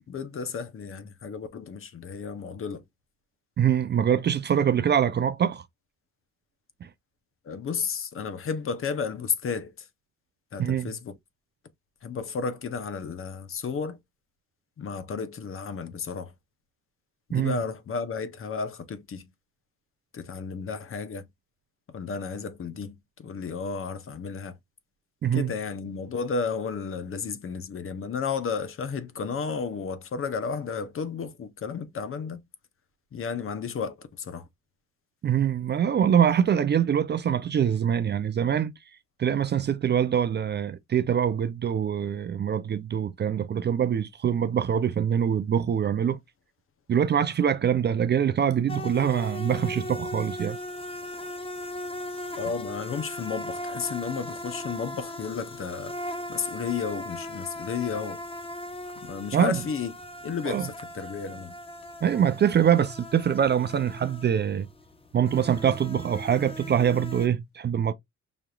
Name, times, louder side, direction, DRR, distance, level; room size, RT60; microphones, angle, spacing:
voice 1, 0.1-2.8 7.4-9.9 10.5-11.1 12.0-14.0 14.8-16.3 17.3-19.3 20.1-21.3 21.9-24.5 25.3-32.4 33.1-34.5 52.4-55.9 56.3-58.2 59.0-59.9 60.2-61.5, left 5 dB, 45° left, 0.8 m, -33 dB
voice 2, 3.6-5.6 10.6-10.9 17.3-17.6 25.2-25.5 35.2-38.7 39.2-46.2 46.9-50.6 59.3-59.6 60.5-60.7 62.0-64.7 65.1-67.9, right 8 dB, 35° right, 0.4 m, -24 dB
sound 1, 48.7-67.3, left 1 dB, 20° left, 0.8 m, -38 dB
5.1 x 2.8 x 2.3 m
cardioid pair, 90°, 30 cm